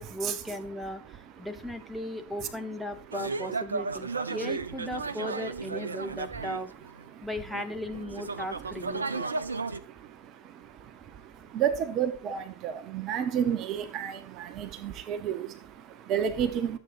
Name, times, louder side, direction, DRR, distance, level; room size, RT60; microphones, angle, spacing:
voice 1, 0.0-6.7 7.2-9.3, left 1 dB, ahead, 1.3 m, -37 dB
sound 1, 3.1-7.1 7.5-9.8, right 4 dB, 75° right, 0.8 m, -34 dB
voice 2, 9.1-16.8, right 8 dB, 35° right, 1.0 m, -32 dB
13.0 x 8.0 x 2.6 m
figure-of-eight pair, 90°, 0 cm